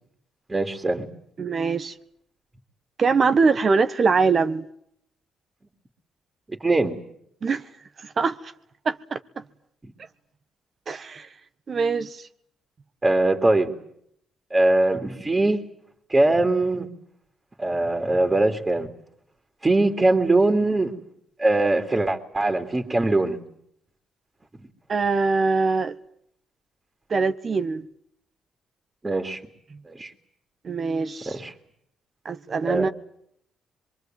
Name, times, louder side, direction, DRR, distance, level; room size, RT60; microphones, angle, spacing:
voice 1, 0.5-1.1 6.5-7.0 9.8-9.9 13.0-13.7 14.5-15.6 16.1-16.9 17.6-18.9 19.6-20.9 21.4-23.4 29.0-29.4 29.9-30.1 31.3-31.5 32.6-32.9, right 2 dB, 20° right, 2.9 m, -21 dB
voice 2, 1.4-1.9 3.0-4.6 7.4-7.6 8.0-8.5 8.8-9.2 10.9-11.3 11.7-12.3 24.9-25.9 27.1-27.8 30.6-31.4 32.2-32.9, right 4 dB, 45° right, 1.3 m, -23 dB
24.0 x 23.5 x 9.3 m
cardioid pair, 90°, 0 cm